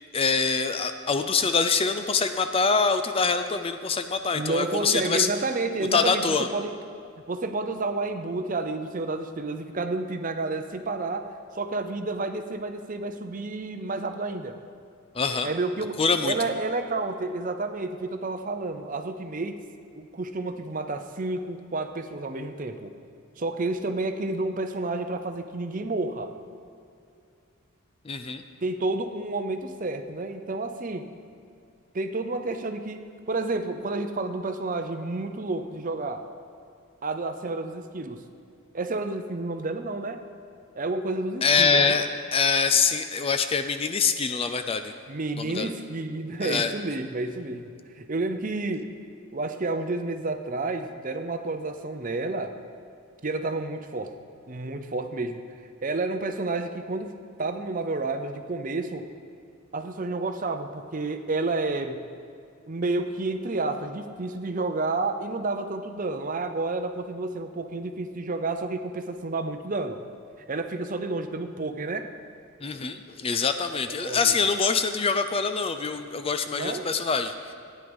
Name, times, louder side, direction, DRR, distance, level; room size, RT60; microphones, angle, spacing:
voice 1, 0.1-5.3 5.9-6.5 15.1-15.5 16.0-16.3 28.1-28.4 41.4-42.1 42.3-44.9 45.4-45.7 46.4-46.7 72.6-77.3, left 5 dB, 25° left, 9 dB, 0.4 m, -24 dB
voice 2, 4.3-6.8 7.3-11.3 11.5-14.6 15.4-16.0 16.2-19.6 20.0-22.9 23.4-26.3 28.6-31.1 31.9-36.3 37.0-38.2 38.7-40.2 40.7-42.0 45.1-48.9 49.3-52.5 53.2-54.1 54.5-55.4 55.8-57.1 57.4-59.1 59.7-62.0 62.7-70.0 70.5-72.1 74.0-74.4 76.5-76.9, right 2 dB, 40° right, 7 dB, 0.6 m, -30 dB
13.0 x 9.5 x 5.3 m, 2.4 s
head